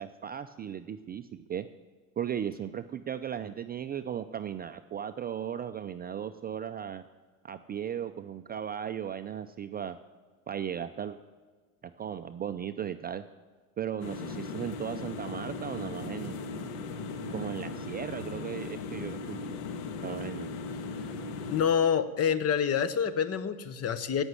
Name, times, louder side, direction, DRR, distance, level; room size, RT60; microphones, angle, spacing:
voice 1, 0.0-1.7 2.2-7.0 7.4-10.0 10.5-11.2 12.0-13.2 13.8-16.4 17.3-19.4 20.0-20.5, right 9 dB, 25° right, 9 dB, 0.4 m, -36 dB
sound 1, 14.0-21.6, left 4 dB, 75° left, 1.5 m, -38 dB
voice 2, 21.5-24.2, left 7 dB, 35° left, 13 dB, 1.0 m, -27 dB
16.0 x 6.3 x 9.6 m, 1.4 s
supercardioid pair, 100°, 43 cm